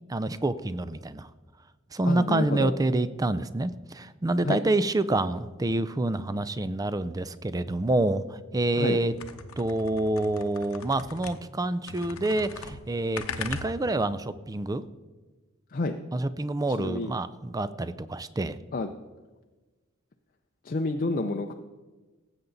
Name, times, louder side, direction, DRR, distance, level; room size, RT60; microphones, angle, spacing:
voice 1, 0.1-1.3 1.9-9.1 9.6-14.8 16.1-18.6, right 2 dB, 15° right, 15 dB, 0.4 m, -27 dB
voice 2, 2.0-2.7 4.4-4.6 8.7-9.0 15.7-16.0 16.7-17.1 18.7-18.9 20.6-21.5, left 3 dB, 40° left, 4 dB, 0.5 m, -29 dB
sound 1, 9.1-11.6 11.9-14.1, left 5 dB, 80° left, 0.8 m, -39 dB
18.0 x 8.1 x 4.0 m, 1.2 s
head